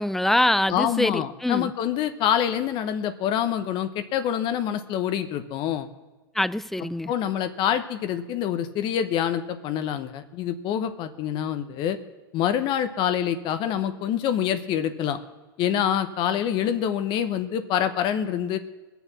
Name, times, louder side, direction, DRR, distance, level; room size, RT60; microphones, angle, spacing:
voice 1, 0.0-1.7 6.4-7.1, left 1 dB, ahead, 0.3 m, -24 dB
voice 2, 0.7-5.9 7.1-12.0 12.3-15.2 15.6-18.6, left 9 dB, 45° left, 1.0 m, -26 dB
20.5 x 7.1 x 6.0 m
hypercardioid pair, 120°, 12 cm